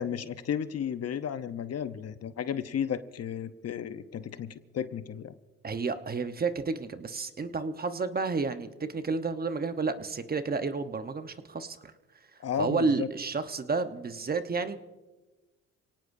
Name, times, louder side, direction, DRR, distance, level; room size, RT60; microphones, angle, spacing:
voice 1, 0.0-5.3 12.4-13.1, left 8 dB, 55° left, 11 dB, 0.9 m, -33 dB
voice 2, 5.6-11.9 12.6-14.8, right 4 dB, 30° right, 9 dB, 1.0 m, -31 dB
28.0 x 18.0 x 2.7 m, 1.2 s
cardioid pair, 90°, 30 cm